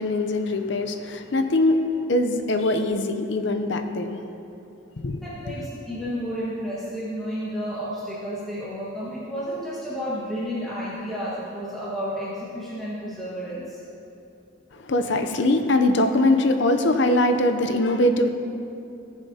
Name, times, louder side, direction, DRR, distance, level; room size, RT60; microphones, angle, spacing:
voice 1, 0.0-4.2 5.0-5.2 5.5-5.6 14.7-18.3, left 1 dB, 65° left, 7 dB, 0.6 m, -22 dB
voice 2, 5.1-13.8, equal, ahead, -11 dB, 1.4 m, -31 dB
16.0 x 7.1 x 2.8 m, 2.8 s
head